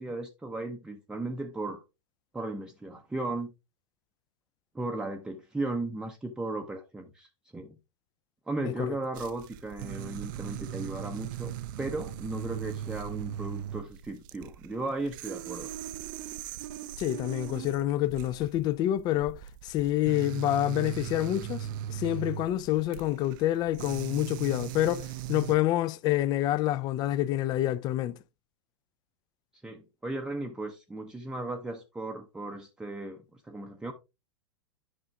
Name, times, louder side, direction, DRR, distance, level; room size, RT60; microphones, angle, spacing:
voice 1, 0.0-1.8 2.3-3.5 4.7-7.8 8.5-15.7 29.6-33.9, right 2 dB, 5° right, 0.6 m, -36 dB
sound 1, 9.1-25.5, right 11 dB, 45° right, 0.4 m, -39 dB
voice 2, 17.0-28.2, left 14 dB, 25° left, 0.4 m, -28 dB
11.0 x 5.8 x 2.3 m
figure-of-eight pair, 95°, 15 cm